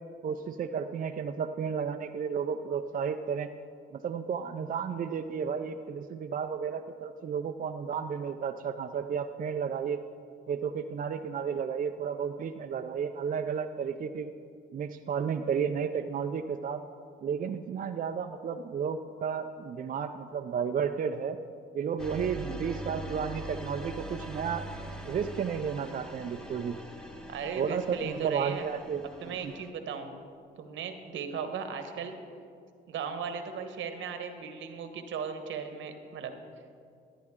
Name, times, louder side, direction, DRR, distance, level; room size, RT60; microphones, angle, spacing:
voice 1, 0.2-3.5 3.9-10.0 10.5-14.3 14.7-16.8 17.2-21.4 21.7-24.7 25.0-26.8 27.6-29.5, right 7 dB, 45° right, 6 dB, 0.5 m, -32 dB
sound 1, 22.0-29.7, right 1 dB, 5° left, 1.0 m, -42 dB
voice 2, 27.3-28.7 29.2-30.1 30.6-32.1 32.9-36.3, right 6 dB, 75° right, 7 dB, 1.2 m, -37 dB
14.0 x 10.0 x 3.7 m, 2.3 s
cardioid pair, 90°, 20 cm